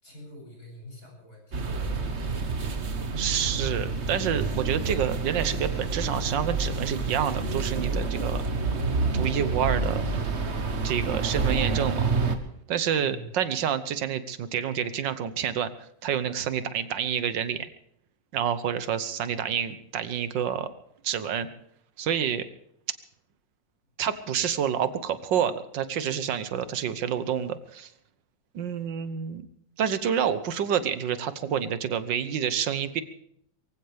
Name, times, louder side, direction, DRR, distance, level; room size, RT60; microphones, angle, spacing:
voice 1, 0.0-2.3 13.0-13.3, left 1 dB, 50° left, -1 dB, 8.3 m, -46 dB
sound 1, 1.5-12.4, right 4 dB, 40° right, 1.5 m, -28 dB
voice 2, 3.2-8.4 9.1-10.1 10.8-12.1 12.7-15.7 16.0-17.7 18.3-20.7 21.0-21.5 22.0-22.5 24.0-27.9 28.6-29.4 29.8-33.0, right 8 dB, 85° right, 12 dB, 1.7 m, -28 dB
23.5 x 15.5 x 3.4 m, 0.70 s
omnidirectional pair, 1.9 m